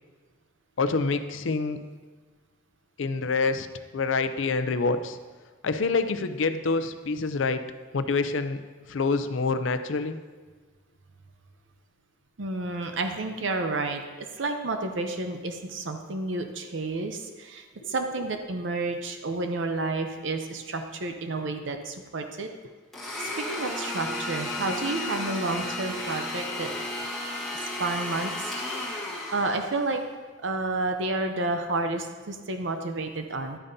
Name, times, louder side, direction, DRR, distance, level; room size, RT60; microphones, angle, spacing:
voice 1, 0.8-1.8 3.0-3.7 3.9-5.2 5.6-7.6 7.9-8.6 8.9-10.2 23.2-23.3, left 4 dB, 75° left, 10 dB, 0.5 m, -26 dB
voice 2, 12.4-22.5 23.2-26.7 27.5-28.6 29.3-30.0 30.4-33.6, right 2 dB, 70° right, 5 dB, 0.7 m, -30 dB
Domestic sounds home sounds, 22.9-30.0, left 1 dB, ahead, 1.6 m, -33 dB
11.0 x 8.7 x 2.7 m, 1.4 s
head